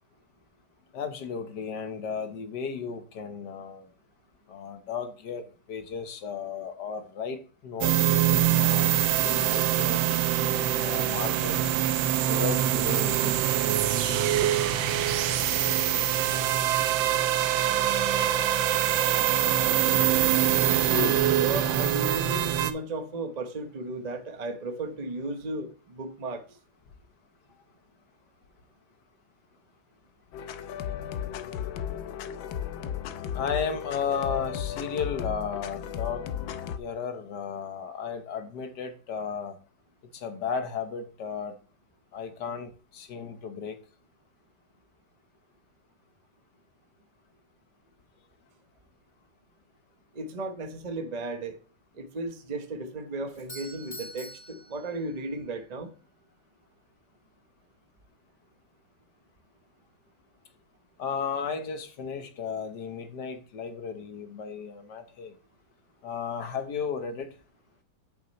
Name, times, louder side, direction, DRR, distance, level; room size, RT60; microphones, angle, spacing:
voice 1, 0.9-3.8 4.5-10.2 10.8-11.7 12.3-13.8 33.3-36.2 36.8-39.5 40.1-41.5 42.1-43.8 61.0-65.3 66.0-67.3, left 6 dB, 65° left, 1.6 m, -34 dB
sound 1, 7.8-22.7, right 11 dB, 80° right, 1.4 m, -24 dB
voice 2, 20.9-26.4 50.1-51.6 52.0-55.9, right 1 dB, 35° right, 0.6 m, -35 dB
sound 2, 30.3-36.8, left 9 dB, 80° left, 1.4 m, -35 dB
Doorbell, 53.3-55.4, equal, 15° left, 3.1 m, -45 dB
8.3 x 6.7 x 3.1 m
omnidirectional pair, 2.1 m